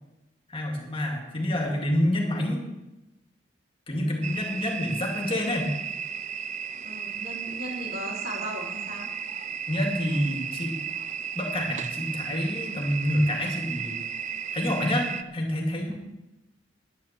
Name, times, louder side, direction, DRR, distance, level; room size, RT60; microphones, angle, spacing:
voice 1, 0.5-2.6 3.9-5.7 9.7-10.8 11.3-14.0 14.5-15.9, left 1 dB, 30° left, 1 dB, 2.3 m, -27 dB
voice 2, 3.9-4.3 6.8-9.1 15.9-16.0, equal, 55° right, -3 dB, 4.3 m, -37 dB
sound 1, 4.2-15.2, right 7 dB, 40° right, 0.5 m, -34 dB
10.5 x 10.5 x 7.5 m, 0.98 s
head